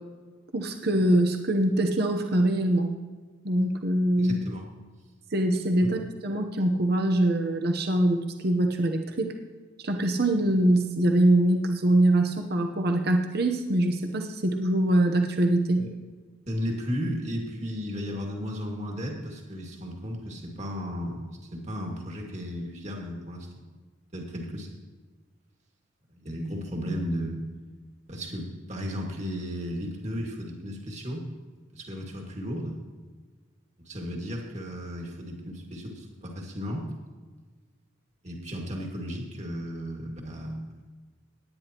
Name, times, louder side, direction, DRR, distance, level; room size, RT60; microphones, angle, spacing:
voice 1, 0.5-2.9 3.4-4.4 5.3-9.3 9.8-15.9, right 1 dB, 55° right, 4 dB, 0.9 m, -23 dB
voice 2, 4.2-4.6 5.8-5.9 15.8-15.9 16.5-23.6 24.1-24.7 26.1-27.4 28.1-31.3 31.7-32.8 33.8-36.9 38.2-40.8, equal, 35° right, 0 dB, 2.1 m, -34 dB
18.0 x 10.0 x 3.0 m, 1.4 s
head